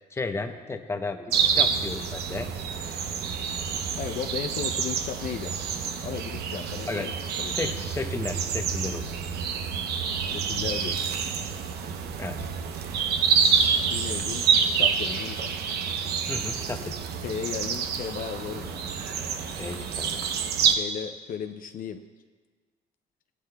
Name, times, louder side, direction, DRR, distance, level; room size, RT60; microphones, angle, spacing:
voice 1, 0.1-2.5 6.9-7.1 7.6-9.0 12.2-12.4 16.3-16.9 19.6-20.2, left 3 dB, 15° left, 6 dB, 0.8 m, -33 dB
sound 1, 1.3-20.7, right 6 dB, 75° right, 0.8 m, -27 dB
voice 2, 4.0-5.5 6.0-7.1 7.4-7.7 10.3-11.1 13.9-14.5 14.8-15.6 17.2-18.9 20.8-22.0, left 8 dB, 55° left, 7 dB, 0.6 m, -35 dB
15.5 x 11.5 x 2.3 m, 1.5 s
cardioid pair, 110°, 17 cm